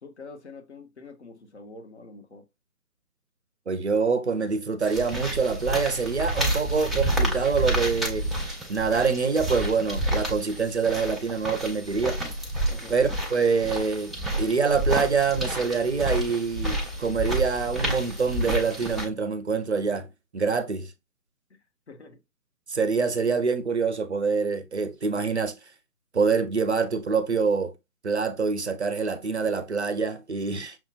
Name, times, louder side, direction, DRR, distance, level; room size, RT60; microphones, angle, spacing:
voice 1, 0.0-2.4 12.7-13.0 21.5-21.6 21.9-22.2, left 3 dB, 50° left, 0.9 m, -45 dB
voice 2, 3.7-8.3 8.7-12.2 12.9-20.1 20.3-20.9 22.7-25.5 26.1-27.7 28.0-30.8, right 5 dB, 50° right, 0.5 m, -25 dB
sound 1, 4.8-19.1, right 1 dB, ahead, 0.4 m, -29 dB
5.7 x 2.8 x 2.3 m
figure-of-eight pair, 145°, 45 cm